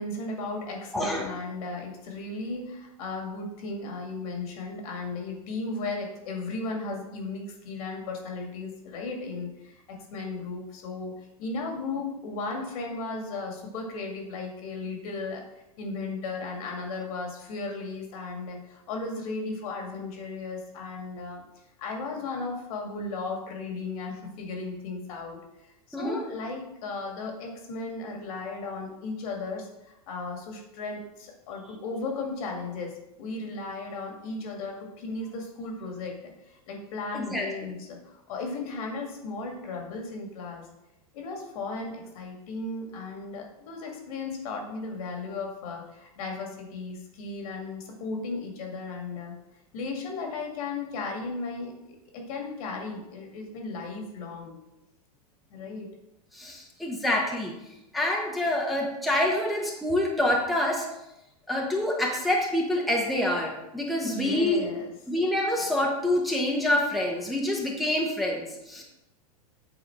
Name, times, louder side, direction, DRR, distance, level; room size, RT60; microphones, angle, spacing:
voice 1, 0.0-11.1 11.4-15.4 15.8-21.4 21.8-40.7 41.1-49.3 49.7-54.5 55.5-55.9 64.0-64.9, left 3 dB, 65° left, 1 dB, 2.1 m, -35 dB
voice 2, 0.9-1.3 25.9-26.2 37.1-37.7 56.3-57.5 57.9-60.8 61.5-64.7 65.1-68.8, left 1 dB, ahead, -2 dB, 1.1 m, -26 dB
7.8 x 3.6 x 4.7 m, 0.90 s
hypercardioid pair, 115°, 20 cm